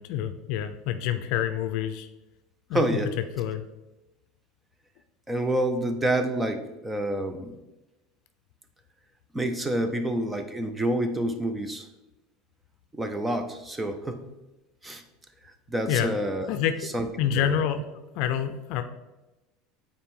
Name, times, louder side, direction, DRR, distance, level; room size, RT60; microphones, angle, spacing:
voice 1, 0.0-2.1 2.7-3.0 3.4-3.6 15.9-16.1 16.5-16.7 17.2-17.8 18.1-18.8, left 10 dB, 55° left, 8 dB, 0.5 m, -27 dB
voice 2, 2.7-3.1 5.3-7.6 9.3-11.9 12.9-14.3 14.8-15.0 15.4-16.6 16.8-17.6, right 1 dB, 10° right, 7 dB, 0.6 m, -28 dB
8.7 x 4.3 x 3.7 m, 1.0 s
cardioid pair, 155°, 0 cm